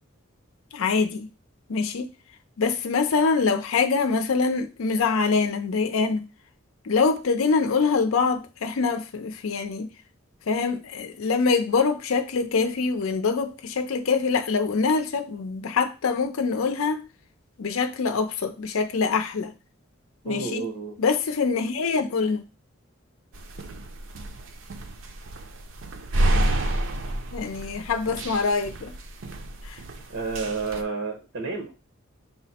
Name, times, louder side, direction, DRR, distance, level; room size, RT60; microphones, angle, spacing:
voice 1, 0.7-1.3 1.7-2.1 2.6-6.3 6.8-9.9 10.5-17.0 17.6-19.5 20.2-20.6 21.0-22.4 27.3-28.9 29.6-29.8, left 4 dB, 85° left, 0.5 m, -24 dB
voice 2, 20.2-21.0 30.1-31.7, right 4 dB, 85° right, 0.9 m, -30 dB
sound 1, 23.3-30.8, right 1 dB, 70° right, 0.5 m, -29 dB
5.6 x 2.0 x 4.2 m
head